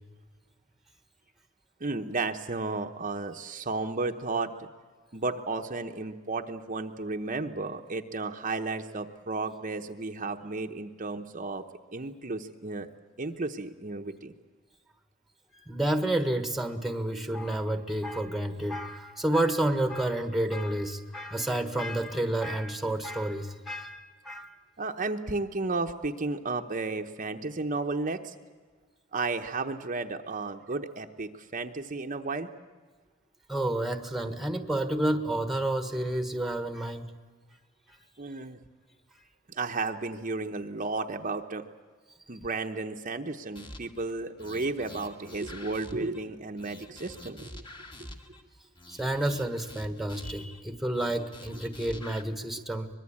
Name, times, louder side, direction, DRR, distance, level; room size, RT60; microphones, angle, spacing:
voice 1, 1.8-4.7 5.1-11.6 11.9-12.9 13.2-14.3 24.8-28.3 29.1-32.5 38.2-38.6 39.5-41.6 42.3-47.6, right 3 dB, 40° right, 5 dB, 0.9 m, -33 dB
voice 2, 15.6-24.5 33.5-37.1 48.9-52.9, right 1 dB, ahead, 8 dB, 1.4 m, -30 dB
sound 1, 43.6-44.0 44.4-46.2 46.6-48.4 48.8-50.6 50.9-52.2, left 1 dB, 25° left, 1.8 m, -46 dB
24.0 x 21.5 x 8.6 m, 1.4 s
head